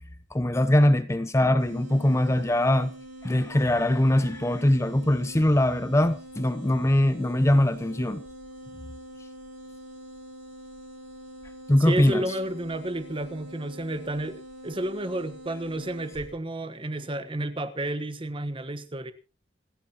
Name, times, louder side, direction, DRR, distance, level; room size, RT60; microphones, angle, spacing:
voice 1, 0.3-2.9 3.2-8.2 11.7-12.2, left 1 dB, 15° left, 0.6 m, -22 dB
sound 1, 1.6-16.4, right 1 dB, 50° right, 4.9 m, -45 dB
voice 2, 11.8-19.1, right 1 dB, 30° right, 1.2 m, -31 dB
27.0 x 11.0 x 2.9 m
head